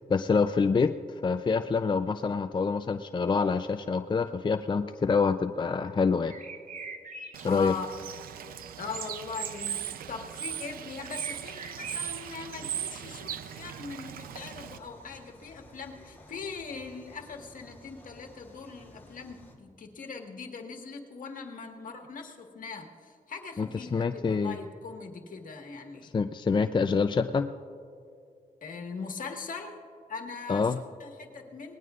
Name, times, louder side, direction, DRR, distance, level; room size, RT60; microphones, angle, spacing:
voice 1, 0.1-6.4 7.4-7.7 23.6-24.6 26.1-27.5 30.5-30.8, left 5 dB, 30° left, 8 dB, 0.5 m, -26 dB
sound 1, 6.2-7.5 7.8-8.0 8.5-9.0 11.0-13.0, right 4 dB, 55° right, 1.3 m, -44 dB
Bird / Water, 7.3-14.8, right 10 dB, 85° right, 0.5 m, -38 dB
voice 2, 7.5-7.9 8.8-26.1 28.6-29.8 30.1-31.7, left 5 dB, 65° left, 3 dB, 1.6 m, -40 dB
sound 2, 14.2-19.6, left 1 dB, 15° left, 3.8 m, -53 dB
24.0 x 19.5 x 2.5 m, 2.3 s
cardioid pair, 65°, 15 cm